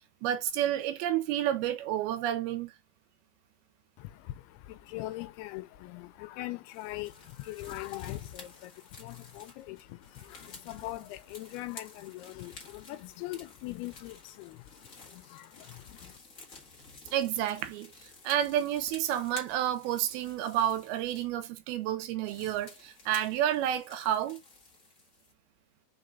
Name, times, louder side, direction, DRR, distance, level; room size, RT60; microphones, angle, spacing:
voice 1, 0.2-2.7 17.1-17.9 18.2-24.4, right 11 dB, 80° right, 2.6 m, -30 dB
voice 2, 4.0-16.2, left 17 dB, 90° left, 2.6 m, -42 dB
sound 1, 6.7-21.3 21.8-21.9 22.2-25.3, left 3 dB, 45° left, 1.0 m, -52 dB
5.1 x 4.9 x 4.0 m
omnidirectional pair, 4.4 m